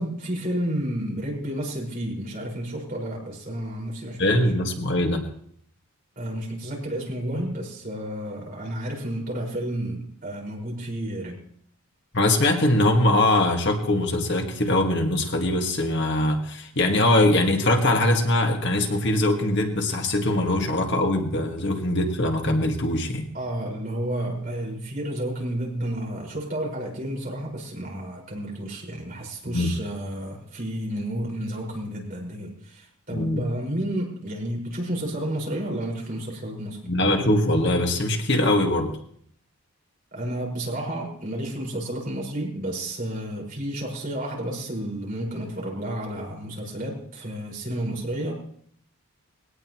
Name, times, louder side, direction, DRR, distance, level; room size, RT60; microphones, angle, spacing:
voice 1, 0.0-4.5 6.2-11.4 23.3-36.9 40.1-48.3, right 1 dB, 40° right, -2 dB, 5.1 m, -31 dB
voice 2, 4.2-5.3 12.1-23.3 29.5-29.7 33.1-33.4 36.9-38.9, left 1 dB, 50° left, 3 dB, 1.8 m, -22 dB
20.5 x 18.0 x 3.1 m, 0.63 s
head